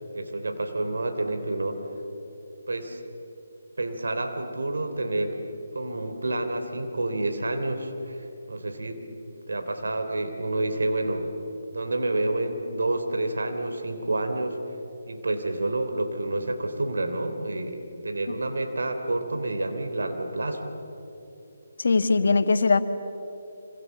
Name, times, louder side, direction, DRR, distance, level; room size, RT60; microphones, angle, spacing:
voice 1, 0.1-1.8 2.7-3.0 3.8-5.4 5.7-9.0 9.5-11.3 11.7-14.6 15.1-17.8 18.0-20.6, right 2 dB, 75° right, 6 dB, 3.3 m, -29 dB
voice 2, 21.8-22.8, left 4 dB, 65° left, 10 dB, 1.6 m, -20 dB
26.0 x 26.0 x 7.4 m, 2.9 s
figure-of-eight pair, 150°, 0 cm